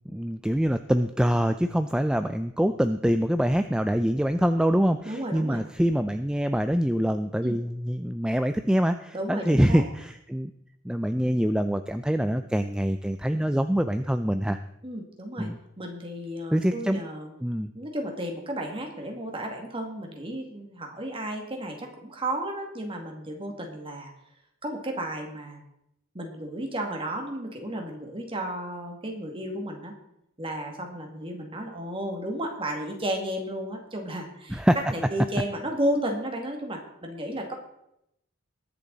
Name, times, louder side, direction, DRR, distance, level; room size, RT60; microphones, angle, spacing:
voice 1, 0.1-10.5 10.8-14.6 15.4-15.6 16.5-17.0 17.4-17.7 34.5-34.8, equal, 5° right, 9 dB, 0.4 m, -25 dB
voice 2, 5.0-5.6 7.4-7.6 9.1-9.8 14.8-15.5 15.8-17.3 17.7-24.1 24.6-25.6 26.1-29.9 30.4-37.5, right 1 dB, 25° right, 2 dB, 2.2 m, -33 dB
21.0 x 7.1 x 4.0 m, 0.80 s
head